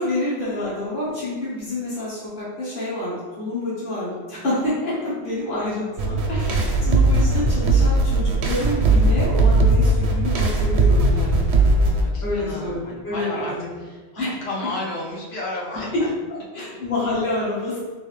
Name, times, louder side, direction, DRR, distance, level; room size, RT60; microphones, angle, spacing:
voice 1, 0.0-11.5 12.2-13.7 14.1-14.3 15.7-16.0 16.5-17.8, left 1 dB, 50° left, -8 dB, 1.5 m, -28 dB
sound 1, 6.0-12.0, right 2 dB, 85° right, 0.9 m, -18 dB
voice 2, 12.0-13.5 13.8-16.1, left 2 dB, 70° left, -4 dB, 1.1 m, -33 dB
3.8 x 2.8 x 3.2 m, 1.4 s
omnidirectional pair, 1.1 m